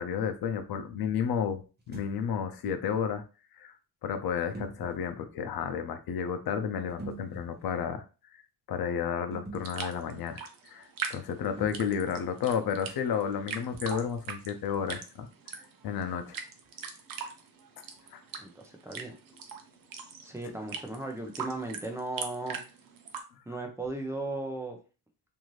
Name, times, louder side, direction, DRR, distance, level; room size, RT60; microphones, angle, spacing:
voice 1, 0.0-3.2 3.6-3.7 4.0-8.0 8.7-15.3 15.8-16.4 18.1-18.2, left 7 dB, 80° left, 7 dB, 0.5 m, -32 dB
sound 1, 1.8-2.2 4.5-5.0 6.9-7.7 9.3-9.9 11.6-12.0 13.7-14.2, right 3 dB, 25° right, 0.9 m, -44 dB
sound 2, 9.5-23.2, right 6 dB, 65° right, 0.6 m, -41 dB
voice 2, 18.4-19.1 20.2-22.6 23.5-24.8, right 2 dB, 10° right, 2 dB, 0.6 m, -36 dB
2.6 x 2.4 x 3.1 m, 0.33 s
cardioid pair, 115°, 36 cm